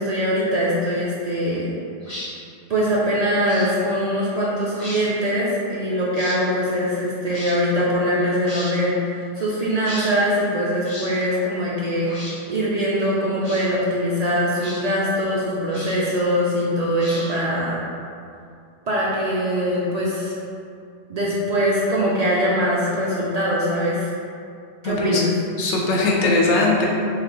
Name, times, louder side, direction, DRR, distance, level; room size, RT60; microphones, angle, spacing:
voice 1, 0.0-1.7 2.7-9.0 9.4-12.1 12.5-17.8 18.9-20.3 21.1-24.1 24.8-25.2, equal, 60° right, -6 dB, 0.4 m, -22 dB
sound 1, 2.0-2.3 3.4-3.7 4.7-5.0 6.1-6.4 7.3-7.6 8.4-8.7 9.8-10.1 10.8-11.1 12.0-12.4 13.4-13.7 14.6-14.8 15.7-16.1 16.9-17.5, left 1 dB, 65° left, 1.4 m, -35 dB
voice 2, 24.8-25.2 25.6-26.9, left 2 dB, 90° left, -2 dB, 0.9 m, -20 dB
3.2 x 2.3 x 3.7 m, 2.5 s
omnidirectional pair, 1.2 m